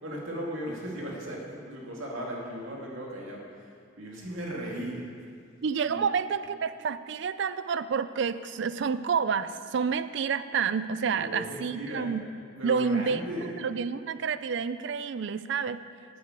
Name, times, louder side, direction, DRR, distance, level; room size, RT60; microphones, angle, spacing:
voice 1, 0.0-3.7 4.0-5.1 5.9-6.0 11.1-12.2 12.6-13.5, right 1 dB, 80° right, -2 dB, 2.3 m, -36 dB
voice 2, 5.6-12.2 12.6-13.2 13.6-15.8, right 6 dB, 60° right, 13 dB, 0.4 m, -29 dB
8.9 x 8.5 x 6.7 m, 2.2 s
head